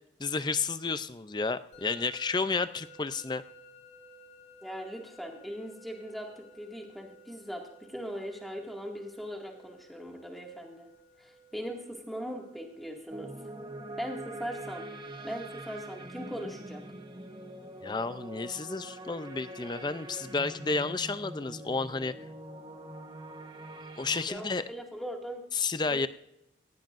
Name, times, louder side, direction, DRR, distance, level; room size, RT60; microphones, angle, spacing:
voice 1, 0.2-3.4 17.8-22.1 24.0-24.6 25.5-26.1, left 4 dB, 25° left, 13 dB, 0.5 m, -31 dB
Musical instrument, 1.7-20.6, left 2 dB, 40° left, 2.4 m, -58 dB
voice 2, 4.6-7.6 7.9-10.9 11.2-13.3 14.0-14.8 15.2-16.9 24.3-25.4 25.9-26.1, equal, ahead, 0 dB, 2.1 m, -40 dB
sound 1, 13.1-24.3, right 1 dB, 25° right, 1.1 m, -44 dB
18.0 x 16.0 x 2.6 m, 0.81 s
head